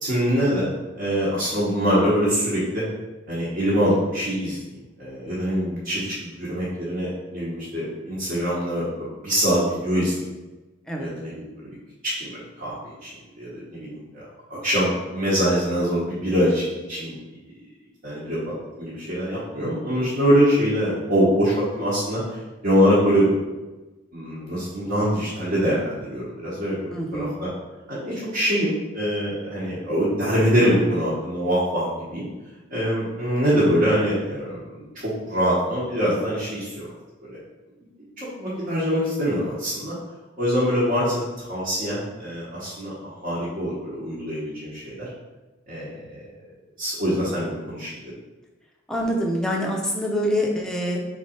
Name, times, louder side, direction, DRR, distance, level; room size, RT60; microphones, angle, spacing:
voice 1, 0.0-2.8 3.3-4.6 5.0-10.1 11.0-11.7 12.1-13.1 13.4-14.2 14.5-17.1 18.0-18.4 18.8-22.2 22.6-23.4 24.1-27.5 27.9-32.3 32.7-36.9 37.3-37.4 38.2-40.0 40.4-42.9 43.2-45.1 45.7-46.3 46.8-48.1, equal, 45° right, -9 dB, 1.1 m, -24 dB
voice 2, 26.9-27.4 48.9-51.0, equal, 5° left, -1 dB, 0.6 m, -25 dB
3.8 x 3.2 x 4.3 m, 1.2 s
head